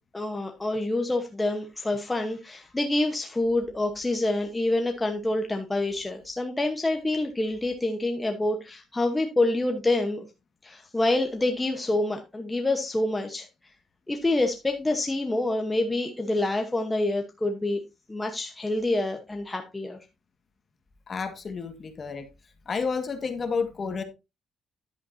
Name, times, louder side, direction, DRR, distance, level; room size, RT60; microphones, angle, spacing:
voice 1, 0.1-10.2 10.6-13.5 14.1-17.8 18.1-20.0, left 2 dB, 10° left, 4 dB, 1.0 m, -27 dB
voice 2, 21.1-22.3 22.6-24.0, left 5 dB, 35° left, 7 dB, 1.7 m, -30 dB
10.5 x 8.6 x 2.7 m, 0.25 s
cardioid pair, 135°, 0 cm